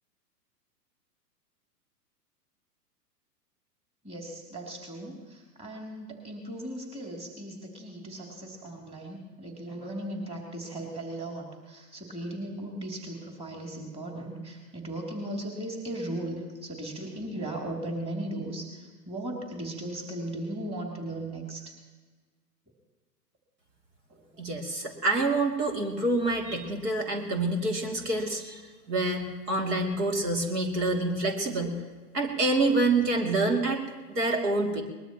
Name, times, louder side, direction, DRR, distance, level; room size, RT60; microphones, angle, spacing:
voice 1, 4.0-21.6 24.1-24.2, right 1 dB, 10° right, 0 dB, 3.1 m, -37 dB
voice 2, 24.4-28.6 28.9-31.8 32.1-34.8, right 2 dB, 75° right, 2 dB, 3.0 m, -27 dB
22.5 x 20.5 x 3.1 m, 1.3 s
figure-of-eight pair, 110°, 49 cm